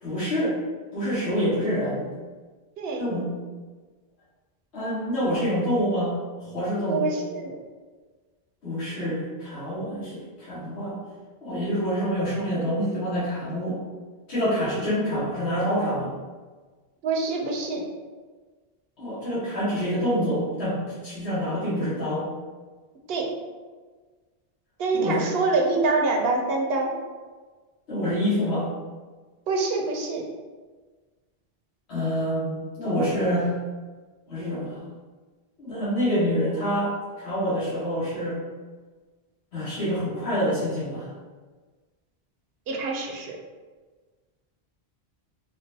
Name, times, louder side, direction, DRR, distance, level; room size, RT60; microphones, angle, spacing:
voice 1, 0.0-0.6 0.9-2.1 3.0-3.3 4.7-7.1 8.6-11.0 11.4-13.8 14.3-16.1 19.0-22.3 24.9-25.2 27.9-28.7 31.9-33.5 34.3-34.8 35.6-38.4 39.5-41.1, equal, 80° left, -12 dB, 1.5 m, -26 dB
voice 2, 6.9-7.6 17.0-17.8 23.1-23.3 24.8-26.9 29.5-30.2 42.7-43.4, right 3 dB, 70° right, 0 dB, 0.8 m, -25 dB
3.8 x 2.3 x 2.7 m, 1.4 s
omnidirectional pair, 1.1 m